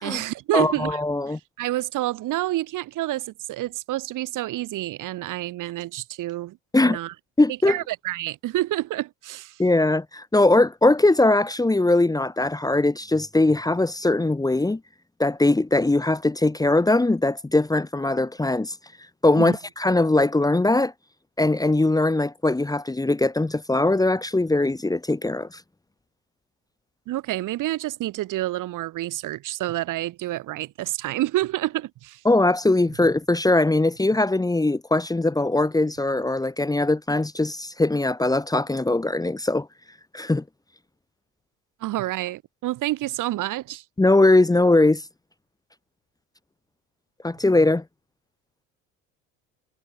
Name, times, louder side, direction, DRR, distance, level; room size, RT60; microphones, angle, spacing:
voice 1, 0.0-1.0 1.3-7.1 7.5-9.6 19.4-19.6 27.1-32.2 41.8-43.8, right 16 dB, 65° right, 5.0 m, -28 dB
voice 2, 0.5-1.4 6.7-7.0 7.4-7.8 9.6-14.8 15.2-18.7 19.2-20.9 21.4-25.6 32.2-39.7 40.1-40.4 44.0-45.0 47.2-47.8, left 2 dB, 10° left, 1.6 m, -21 dB
supercardioid pair, 80°, 34 cm